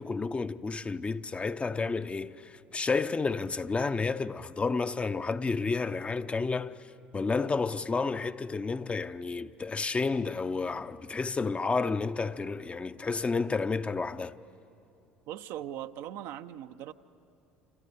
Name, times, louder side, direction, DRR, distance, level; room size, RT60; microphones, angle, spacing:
voice 1, 0.0-6.9 7.1-14.4, left 4 dB, 25° left, 0.7 m, -31 dB
voice 2, 15.3-16.9, right 11 dB, 65° right, 0.7 m, -40 dB
28.0 x 28.0 x 6.8 m
hypercardioid pair, 65°, 5 cm